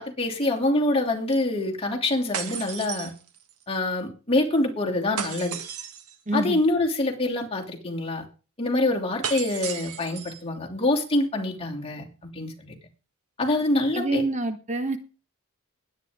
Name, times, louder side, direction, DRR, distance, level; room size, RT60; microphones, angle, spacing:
voice 1, 0.0-3.1 3.7-5.6 6.3-8.3 8.6-12.8 13.4-14.3, left 2 dB, 25° left, 0 dB, 2.7 m, -25 dB
sound 1, 2.3-3.6 5.2-6.2 9.2-10.4, right 7 dB, 85° right, 1.8 m, -34 dB
voice 2, 6.3-6.6 13.9-15.0, right 2 dB, 35° right, 8 dB, 1.4 m, -26 dB
20.5 x 9.4 x 3.6 m, 0.35 s
head